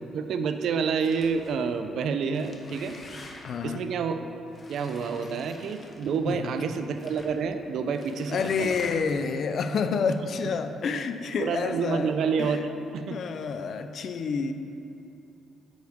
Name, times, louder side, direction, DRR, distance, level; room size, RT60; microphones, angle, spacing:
voice 1, 0.1-3.0 3.6-4.3 4.7-9.0 11.4-13.2, right 5 dB, 70° right, 8 dB, 0.5 m, -28 dB
sound 1, 1.0-1.6 2.2-3.7 4.5-6.3 6.9-7.4 7.9-9.3, left 2 dB, 35° left, 0.9 m, -47 dB
voice 2, 3.4-3.8 6.3-6.5 8.3-12.1 12.4-12.6 13.1-14.5, left 5 dB, 60° left, 9 dB, 0.5 m, -29 dB
9.2 x 6.4 x 3.5 m, 2.8 s
cardioid pair, 90°, 0 cm